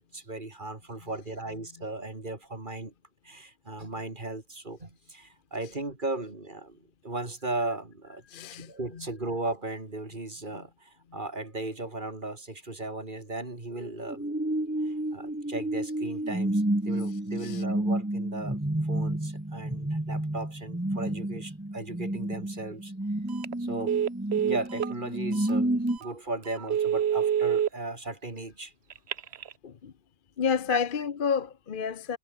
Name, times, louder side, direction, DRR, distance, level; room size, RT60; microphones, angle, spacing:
voice 1, 0.0-2.9 3.2-8.2 8.6-14.3 14.8-22.9 23.6-24.0 24.4-28.7 30.7-30.8, right 2 dB, 35° right, 3.3 m, -37 dB
voice 2, 8.3-8.7 17.4-17.6 29.6-29.9 30.4-32.2, left 6 dB, 45° left, 1.0 m, -29 dB
sound 1, 13.7-26.0, right 1 dB, 10° right, 1.3 m, -30 dB
Telephone, 23.3-23.5 23.9-24.9 25.5-25.6 26.0-26.1 26.6-27.7 28.9-29.5, right 9 dB, 55° right, 1.0 m, -26 dB
omnidirectional pair, 1.4 m